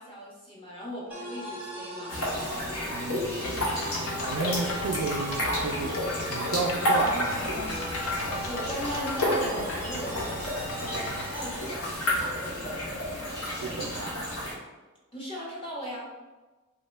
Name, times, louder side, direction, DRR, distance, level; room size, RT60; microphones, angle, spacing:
voice 1, 0.0-2.1 8.1-11.1 11.3-12.7 15.1-16.1, equal, 25° left, -5 dB, 0.7 m, -38 dB
sound 1, 1.1-11.8, right 1 dB, 10° right, 0.5 m, -41 dB
sound 2, 2.1-14.5, left 1 dB, 80° left, 0.8 m, -31 dB
voice 2, 2.9-6.0 6.3-7.4 13.6-14.1, right 4 dB, 75° right, 5 dB, 0.3 m, -32 dB
sound 3, 3.4-11.3, left 2 dB, 65° left, 0.4 m, -36 dB
3.0 x 2.1 x 3.1 m, 1.2 s
head